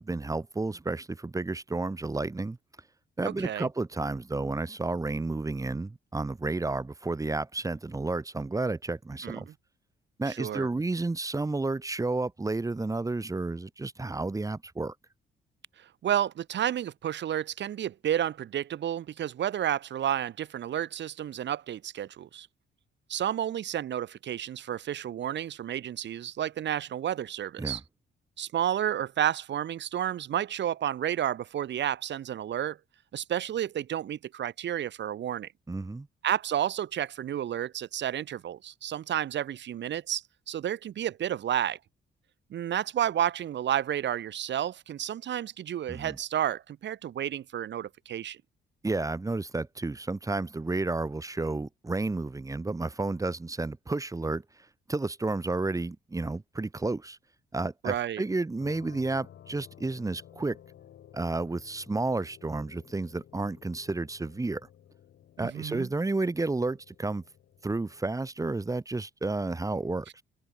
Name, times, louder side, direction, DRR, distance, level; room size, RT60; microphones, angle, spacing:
voice 1, 0.0-2.6 3.2-9.5 10.2-14.9 27.6-27.8 35.7-36.1 45.9-46.2 48.8-54.4 54.9-57.2 57.5-60.6 61.1-64.6 65.4-67.2 67.6-70.2, right 3 dB, 15° right, 1.4 m, -31 dB
voice 2, 3.2-3.7 9.2-9.5 10.3-10.7 15.8-22.5 23.1-27.8 28.4-32.8 33.1-35.5 36.2-41.8 42.5-48.4 57.8-58.2 65.4-65.9, right 10 dB, 65° right, 1.9 m, -31 dB
sound 1, 58.6-68.1, left 10 dB, 65° left, 2.9 m, -54 dB
open air
cardioid pair, 90°, 20 cm